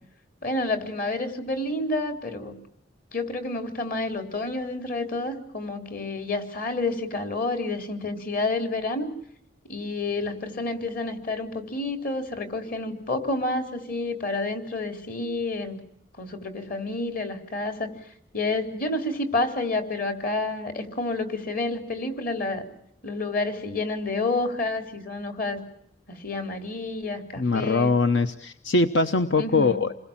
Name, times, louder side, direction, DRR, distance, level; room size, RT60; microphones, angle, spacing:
voice 1, 0.4-2.6 3.1-9.1 9.7-15.8 16.2-17.9 18.3-22.6 23.0-25.6 26.1-28.0 29.4-29.8, left 2 dB, 50° left, 6 dB, 3.8 m, -29 dB
voice 2, 27.4-29.9, left 3 dB, 85° left, 9 dB, 1.0 m, -22 dB
28.5 x 21.5 x 7.4 m, 0.72 s
head